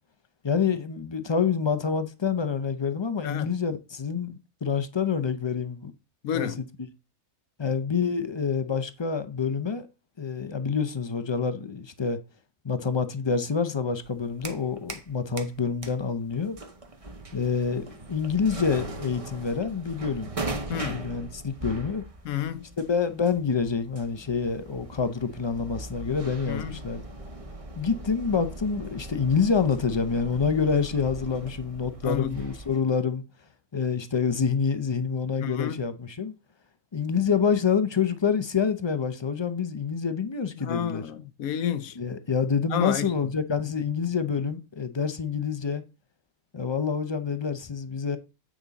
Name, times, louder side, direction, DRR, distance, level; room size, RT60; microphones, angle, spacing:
voice 1, 0.4-5.9 6.3-6.5 7.6-9.9 10.2-12.2 12.6-16.6 17.3-20.3 20.8-22.0 22.9-27.0 27.8-33.2 33.7-36.3 36.9-41.0 42.0-45.8 46.5-48.2, left 6 dB, 45° left, 0.3 m, -27 dB
voice 2, 6.2-6.6 20.7-21.1 22.2-22.6 26.5-26.8 32.0-32.4 35.4-35.8 40.5-42.0 42.7-43.1 43.6-43.7, left 10 dB, 85° left, 1.2 m, -30 dB
sound 1, 14.0-15.1 15.4-32.8, right 2 dB, 30° right, 0.9 m, -40 dB
8.7 x 5.1 x 4.0 m
omnidirectional pair, 1.5 m